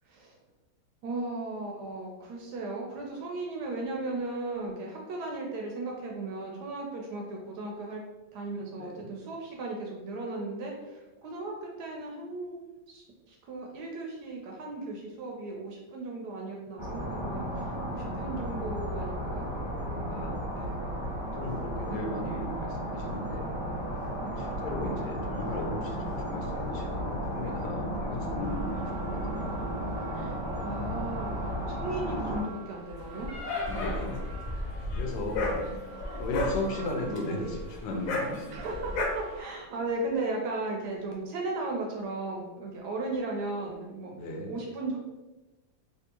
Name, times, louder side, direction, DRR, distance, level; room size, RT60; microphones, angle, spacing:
voice 1, 0.1-0.4 1.0-8.0 8.3-19.5 21.9-22.0 24.2-24.3 30.1-33.3 35.3-36.0 38.5-44.1 44.5-45.0, right 2 dB, 70° right, 0 dB, 1.0 m, -36 dB
voice 2, 8.8-9.1 18.1-18.4 20.1-20.9 21.3-23.5 24.1-29.7 33.7-34.3 34.9-35.6 36.1-38.7 44.1-44.6, left 2 dB, 75° left, 1 dB, 1.2 m, -36 dB
sound 1, 16.8-32.4, equal, 20° left, 0.9 m, -34 dB
sound 2, 28.4-39.4, equal, 90° right, 0.5 m, -41 dB
Dog, 33.0-39.1, left 3 dB, 90° left, 1.4 m, -35 dB
3.5 x 2.4 x 2.9 m, 1.1 s
omnidirectional pair, 2.1 m